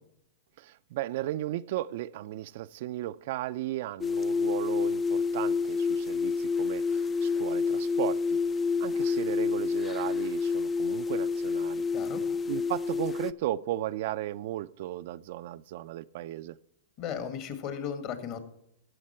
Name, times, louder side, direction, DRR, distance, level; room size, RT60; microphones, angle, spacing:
voice 1, 0.6-8.4 8.8-11.8 12.5-16.6, right 14 dB, 60° right, 0.3 m, -35 dB
sound 1, 4.0-13.3, left 5 dB, 20° left, 0.3 m, -28 dB
voice 2, 17.0-18.4, left 8 dB, 45° left, 1.7 m, -35 dB
14.5 x 6.5 x 4.4 m
hypercardioid pair, 120°, 0 cm